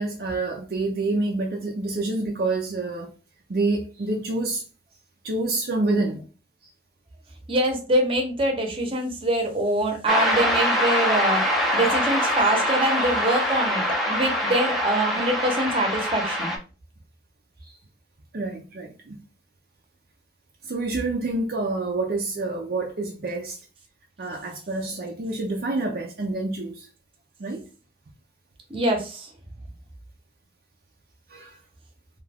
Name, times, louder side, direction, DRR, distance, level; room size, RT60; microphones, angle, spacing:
voice 1, 0.0-3.1 3.5-4.6 5.2-6.2 17.6-17.8 18.3-19.2 20.6-23.6 24.2-26.9 27.4-27.6 31.3-31.6, right 2 dB, 55° right, 0.5 m, -27 dB
voice 2, 7.5-11.5 11.7-16.5 28.7-29.3, right 1 dB, 30° right, 0.8 m, -24 dB
sound 1, 10.1-16.6, equal, ahead, 0.5 m, -24 dB
2.7 x 2.3 x 3.4 m
head